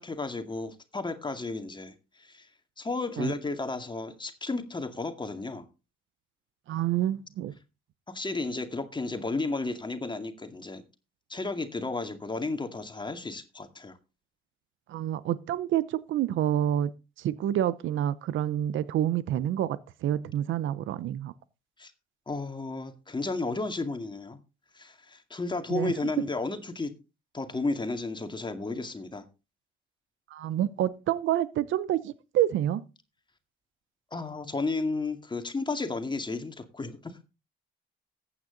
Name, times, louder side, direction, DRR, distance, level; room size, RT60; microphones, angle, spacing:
voice 1, 0.0-2.5 2.8-5.6 8.1-10.8 11.3-14.0 21.8-21.9 22.3-24.4 24.7-26.9 27.3-29.2 34.1-37.2, left 3 dB, 25° left, 2.1 m, -33 dB
voice 2, 6.7-7.5 14.9-16.9 17.2-21.3 25.7-25.9 30.3-32.8, right 11 dB, 75° right, 0.8 m, -28 dB
14.5 x 9.1 x 3.9 m
cardioid pair, 90°, 20 cm